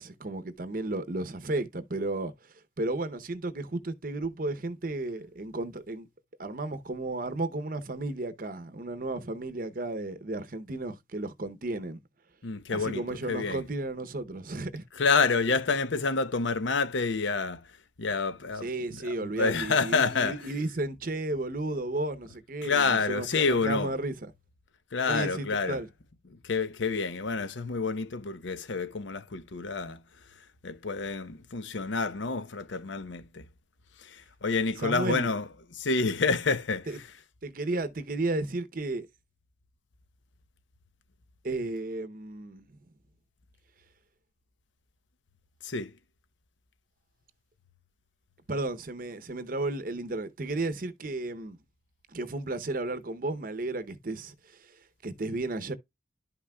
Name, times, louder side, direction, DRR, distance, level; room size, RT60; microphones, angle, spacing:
voice 1, 0.0-6.1 6.4-12.0 12.7-14.8 18.6-24.3 25.1-25.9 34.8-35.3 36.9-37.0 37.4-39.1 41.4-42.7 48.5-51.6 52.1-55.7, right 2 dB, 45° right, 0.8 m, -33 dB
voice 2, 12.4-13.6 14.9-20.4 22.6-23.9 24.9-25.8 26.3-33.5 34.0-37.1 45.6-45.9, left 4 dB, 75° left, 0.8 m, -29 dB
11.0 x 5.9 x 2.3 m
head